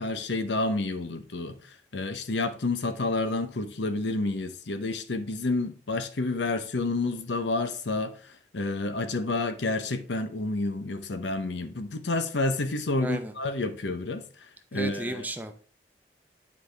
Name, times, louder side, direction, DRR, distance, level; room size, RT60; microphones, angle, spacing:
voice 1, 0.0-14.3 14.7-15.2, left 2 dB, 80° left, 0.8 m, -29 dB
voice 2, 13.0-13.3 14.7-15.5, right 1 dB, 10° right, 0.6 m, -34 dB
9.3 x 4.8 x 3.3 m
head